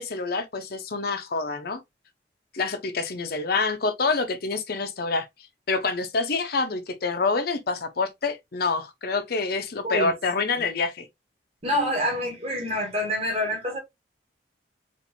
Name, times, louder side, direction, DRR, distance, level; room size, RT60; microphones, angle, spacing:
voice 1, 0.0-1.8 2.5-5.3 5.7-11.1, left 4 dB, 55° left, 0.6 m, -27 dB
voice 2, 11.6-13.8, left 1 dB, 35° right, 1.4 m, -27 dB
4.3 x 2.6 x 2.6 m
head